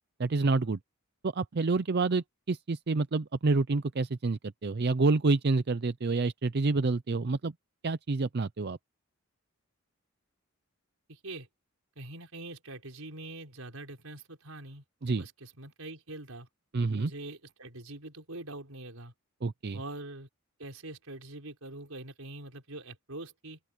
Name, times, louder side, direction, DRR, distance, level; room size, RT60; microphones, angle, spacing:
voice 1, 0.2-0.8 1.2-7.5 7.8-8.8 15.0-15.2 16.7-17.1 19.4-19.8, right 3 dB, 50° right, 0.5 m, -28 dB
voice 2, 11.1-11.5 12.0-14.8 15.1-16.5 16.8-19.1 19.7-20.3 20.6-23.6, right 2 dB, 75° right, 4.8 m, -44 dB
open air
head